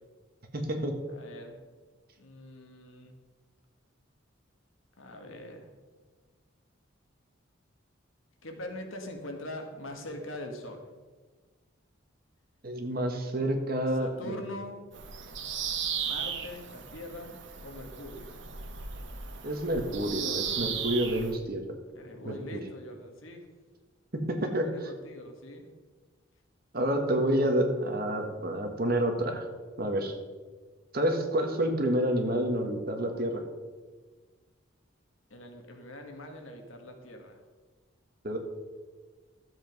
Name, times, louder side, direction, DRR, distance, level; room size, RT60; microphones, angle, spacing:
voice 1, 0.5-1.0 12.6-14.4 19.4-21.6 22.2-22.4 24.1-24.9 26.7-29.5 29.8-30.1 30.9-33.4 38.2-38.4, right 1 dB, 45° right, 4 dB, 1.5 m, -29 dB
voice 2, 1.1-1.6 2.2-3.1 5.0-5.7 8.4-10.9 13.9-14.8 16.0-17.4 17.6-18.3 21.9-23.5 24.4-25.7 35.3-37.4, left 1 dB, 80° left, 4 dB, 1.8 m, -42 dB
Bird vocalization bird call bird song, 14.9-21.3, right 7 dB, 60° right, 1.2 m, -36 dB
12.5 x 7.8 x 5.3 m, 1.4 s
head